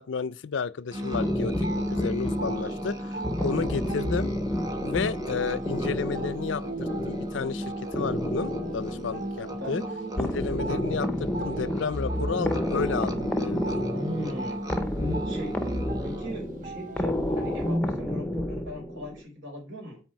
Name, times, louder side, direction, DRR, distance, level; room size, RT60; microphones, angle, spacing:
voice 1, 0.0-4.3 4.8-6.6 7.0-9.8 10.2-13.8, left 5 dB, 85° left, 0.4 m, -32 dB
Musical instrument, 0.9-16.5, equal, 20° right, 0.8 m, -36 dB
sound 1, 1.0-17.8, right 3 dB, 45° right, 0.5 m, -40 dB
sound 2, 1.1-19.2, equal, 10° left, 0.5 m, -31 dB
voice 2, 13.9-14.6 15.0-15.6 16.0-20.0, left 1 dB, 80° right, 4.0 m, -38 dB
6.0 x 4.8 x 5.6 m
head